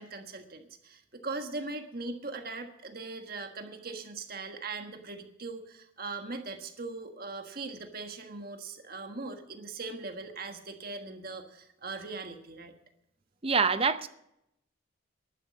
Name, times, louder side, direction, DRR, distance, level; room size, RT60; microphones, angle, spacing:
voice 1, 0.0-12.8, right 3 dB, 45° right, 1.5 m, -40 dB
voice 2, 13.4-14.1, right 5 dB, 25° right, 0.6 m, -25 dB
11.5 x 11.0 x 7.3 m
head